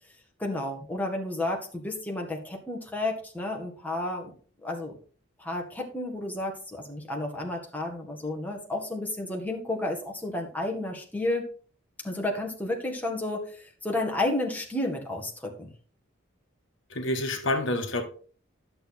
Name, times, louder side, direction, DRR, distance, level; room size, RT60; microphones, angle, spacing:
voice 1, 0.4-4.3 4.6-4.9 5.4-11.4 12.0-15.7, left 2 dB, 10° left, 1.8 m, -31 dB
voice 2, 16.9-18.0, left 1 dB, 65° left, 1.5 m, -28 dB
11.0 x 6.9 x 4.3 m
head